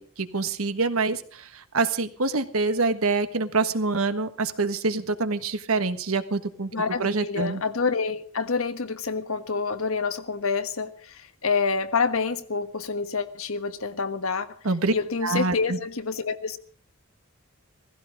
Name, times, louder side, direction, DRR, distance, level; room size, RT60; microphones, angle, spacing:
voice 1, 0.0-6.7 7.0-7.6 14.6-14.9 15.2-15.8, right 3 dB, 90° right, 10 dB, 1.4 m, -26 dB
voice 2, 6.7-14.5 14.9-16.6, left 4 dB, 80° left, 10 dB, 1.4 m, -27 dB
17.0 x 15.5 x 5.2 m, 0.43 s
head